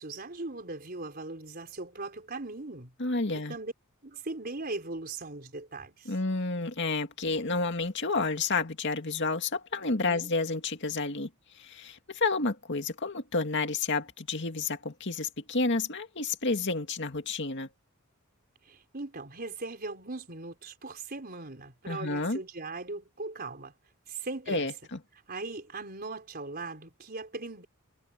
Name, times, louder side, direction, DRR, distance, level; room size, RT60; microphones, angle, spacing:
voice 1, 0.0-2.9 3.3-3.7 4.0-6.1 10.0-10.3 18.7-23.7 24.1-24.7 25.3-27.6, right 3 dB, 45° right, 4.5 m, -39 dB
voice 2, 3.0-3.5 6.1-11.3 11.6-17.7 21.9-22.4 24.5-25.0, left 3 dB, 55° left, 2.2 m, -30 dB
head